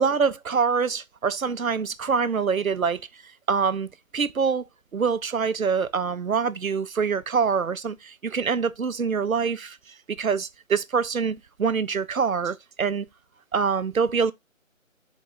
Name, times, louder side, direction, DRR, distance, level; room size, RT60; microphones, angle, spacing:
voice 1, 0.0-3.0 3.5-4.6 4.9-9.8 10.2-13.1 13.5-14.3, right 5 dB, 85° right, 0.6 m, -25 dB
4.5 x 3.1 x 3.8 m
figure-of-eight pair, 155°, 40 cm